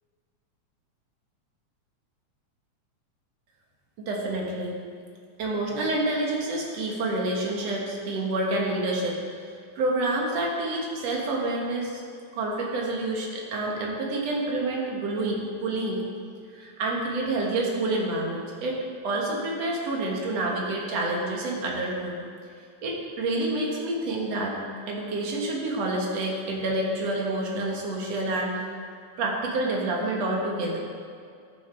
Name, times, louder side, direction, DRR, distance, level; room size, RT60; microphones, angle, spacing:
voice 1, 4.0-4.8 5.4-9.2 9.8-12.0 12.3-16.0 16.5-22.1 22.8-24.6 24.9-28.6 29.2-30.8, right 2 dB, 60° right, -1 dB, 2.6 m, -28 dB
15.0 x 7.1 x 4.5 m, 2.3 s
omnidirectional pair, 3.5 m